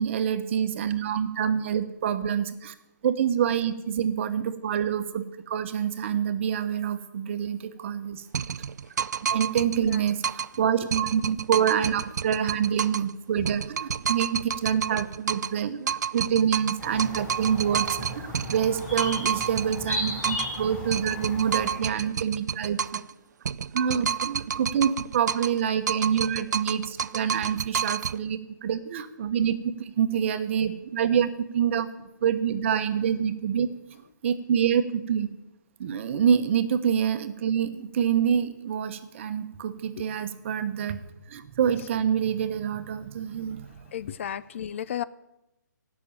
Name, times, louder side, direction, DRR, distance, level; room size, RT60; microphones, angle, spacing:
voice 1, 0.0-2.7 3.0-8.2 9.3-23.0 23.7-31.9 32.2-33.7 34.2-35.3 35.8-41.0 41.3-43.8, right 8 dB, 40° right, 10 dB, 1.0 m, -26 dB
sound 1, 8.3-10.6 10.9-13.1 13.4-15.6 15.9-20.6 20.9-23.1 23.4-25.6 25.9-28.2, right 7 dB, 65° right, 0.4 m, -30 dB
voice 2, 9.6-10.0 40.0-40.1 43.9-45.0, left 10 dB, 40° left, 17 dB, 0.4 m, -34 dB
sound 2, 16.8-21.8, left 1 dB, 10° left, 4.2 m, -35 dB
16.0 x 6.1 x 8.9 m, 0.93 s
hypercardioid pair, 150°, 10 cm